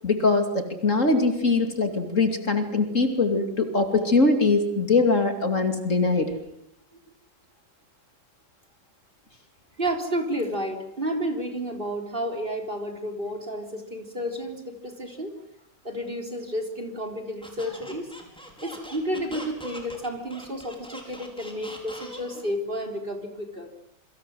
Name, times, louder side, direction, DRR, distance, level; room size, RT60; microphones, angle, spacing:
voice 1, 0.0-6.3, left 3 dB, 45° left, 6 dB, 3.0 m, -22 dB
voice 2, 9.8-15.3 15.8-18.1 18.6-23.7, equal, 30° right, 4 dB, 3.9 m, -31 dB
Squeak, 17.4-22.5, equal, 5° left, 5.6 m, -42 dB
28.0 x 24.0 x 7.7 m, 0.76 s
omnidirectional pair, 1.9 m